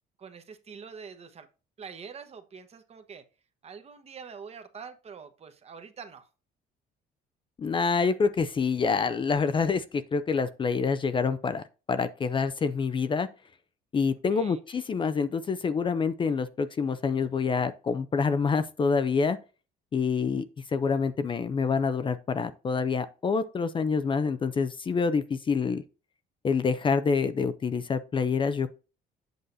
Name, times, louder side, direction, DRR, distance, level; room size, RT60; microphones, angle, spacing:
voice 1, 0.2-1.5 1.8-3.2 3.6-6.3 14.3-14.6, right 6 dB, 40° right, 1.1 m, -45 dB
voice 2, 7.6-11.6 11.9-13.3 13.9-19.4 19.9-25.8 26.4-28.7, left 5 dB, 30° left, 0.5 m, -27 dB
7.8 x 6.4 x 2.7 m
cardioid pair, 110°, 17 cm